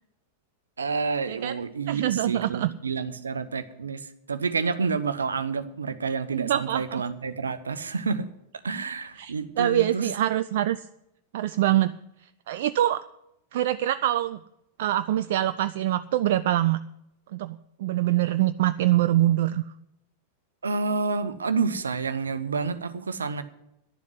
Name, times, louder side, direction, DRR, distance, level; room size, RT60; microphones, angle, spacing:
voice 1, 0.8-8.3 8.6-10.1 20.6-23.4, right 4 dB, 75° right, 12 dB, 0.9 m, -29 dB
voice 2, 1.9-2.7 6.3-7.0 9.2-10.9 11.3-11.9 12.5-13.0 13.5-14.4 14.8-16.8 17.3-19.6, right 13 dB, 55° right, 13 dB, 0.4 m, -24 dB
11.5 x 7.3 x 9.7 m, 0.83 s
figure-of-eight pair, 90°, 0 cm